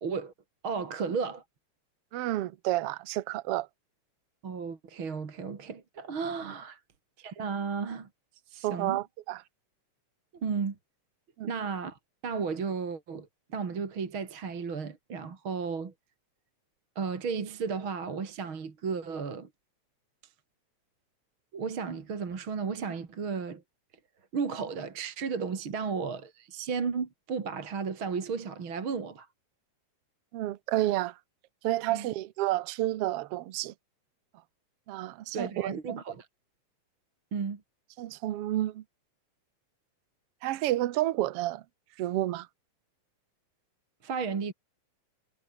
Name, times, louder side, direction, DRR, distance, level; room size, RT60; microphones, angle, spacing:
voice 1, 0.0-0.3 0.6-1.4 4.4-6.8 7.2-8.1 8.5-9.0 10.3-10.8 11.4-13.3 13.5-15.9 17.0-19.5 21.5-23.6 24.3-29.3 31.9-32.1 35.3-36.3 37.3-37.6 44.0-44.5, right 5 dB, 45° right, 3.2 m, -34 dB
voice 2, 2.1-3.7 6.4-6.5 8.6-9.4 11.4-11.5 30.3-31.2 31.6-33.7 34.9-36.0 38.0-38.8 40.4-41.6 42.0-42.5, right 15 dB, 65° right, 1.7 m, -30 dB
omnidirectional pair, 3.5 m